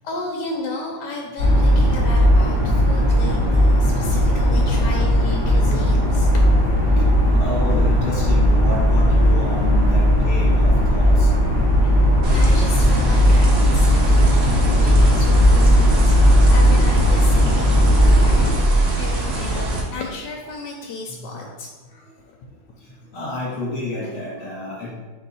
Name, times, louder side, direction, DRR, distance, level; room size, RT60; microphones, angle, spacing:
voice 1, 0.0-6.5 11.8-21.7 22.2-22.3 24.0-24.1, left 3 dB, 75° left, 0 dB, 1.1 m, -34 dB
sound 1, 1.4-18.5, equal, 20° right, 0.9 m, -16 dB
voice 2, 7.3-11.3 14.2-14.8 21.3-21.5 23.1-24.9, left 2 dB, 30° left, -7 dB, 1.5 m, -30 dB
sound 2, 12.2-19.8, right 1 dB, 65° right, 1.2 m, -23 dB
4.6 x 2.7 x 4.1 m, 1.2 s
omnidirectional pair, 2.0 m